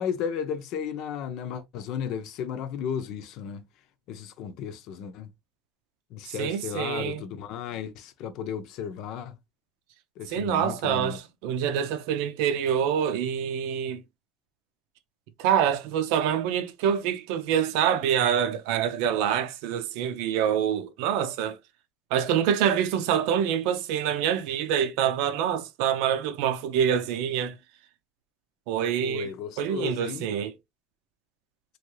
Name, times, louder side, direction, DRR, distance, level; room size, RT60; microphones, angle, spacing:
voice 1, 0.0-3.7 4.1-5.3 6.1-9.3 10.2-11.2 29.0-30.3, left 7 dB, 65° left, 0.7 m, -34 dB
voice 2, 6.3-7.2 10.3-14.0 15.4-21.6 22.1-27.6 28.7-30.5, right 9 dB, 80° right, 0.6 m, -26 dB
3.1 x 2.6 x 3.1 m
supercardioid pair, 120°, 0 cm